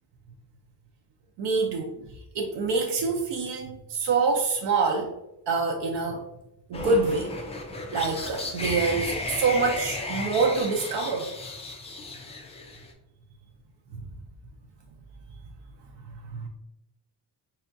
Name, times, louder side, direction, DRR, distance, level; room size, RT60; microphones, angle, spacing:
voice 1, 1.4-1.9 2.3-5.1 5.5-6.3 6.7-7.3 7.9-11.3 16.3-16.5, right 4 dB, 80° right, 1 dB, 0.7 m, -26 dB
sound 1, 6.7-12.9, left 2 dB, 15° left, 0.3 m, -34 dB
5.4 x 2.3 x 2.6 m, 0.89 s
cardioid pair, 165°, 41 cm